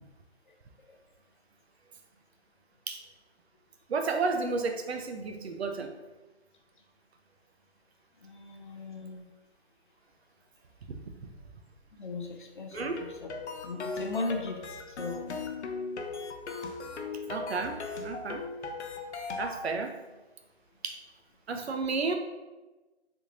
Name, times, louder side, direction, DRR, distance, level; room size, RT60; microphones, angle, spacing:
voice 1, 3.9-5.9 12.7-13.0 17.3-18.5 19.4-20.0 20.8-21.0 21.5-22.2, right 4 dB, 70° right, 5 dB, 0.6 m, -32 dB
voice 2, 8.2-9.3 11.9-13.3 13.6-15.3, left 3 dB, 50° left, 3 dB, 0.5 m, -38 dB
sound 1, 12.7-19.6, left 3 dB, 90° left, 0.6 m, -38 dB
3.5 x 2.4 x 2.9 m, 1.1 s
hypercardioid pair, 170°, 33 cm